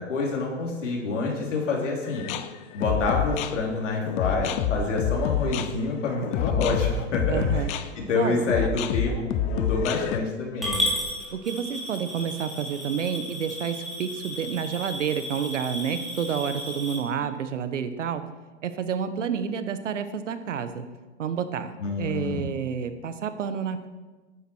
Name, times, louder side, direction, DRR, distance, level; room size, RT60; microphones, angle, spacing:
voice 1, 0.0-2.2 2.7-7.6 8.0-10.8 21.8-22.5, left 3 dB, 85° left, -1 dB, 3.4 m, -27 dB
sound 1, 2.0-10.2, left 7 dB, 20° left, 0.4 m, -28 dB
voice 2, 7.3-7.7 8.1-8.4 11.3-18.2 18.6-20.9 21.2-23.9, right 7 dB, 85° right, 10 dB, 1.2 m, -29 dB
Coin (dropping) / Glass, 10.6-17.0, equal, ahead, 3.1 m, -33 dB
11.5 x 9.2 x 4.6 m, 1.2 s
hypercardioid pair, 130°, 36 cm